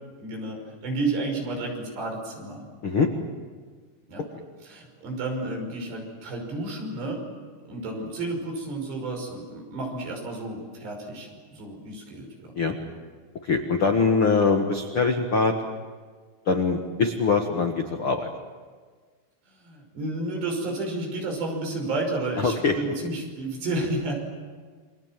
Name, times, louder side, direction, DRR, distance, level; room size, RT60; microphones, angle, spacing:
voice 1, 0.2-2.6 4.1-4.2 4.6-7.3 7.7-12.5 19.5-24.1, right 2 dB, 60° right, 2 dB, 7.8 m, -31 dB
voice 2, 13.4-15.5 16.4-18.3 22.4-22.7, left 4 dB, 75° left, 4 dB, 1.2 m, -23 dB
29.5 x 25.0 x 7.6 m, 1.5 s
omnidirectional pair, 5.4 m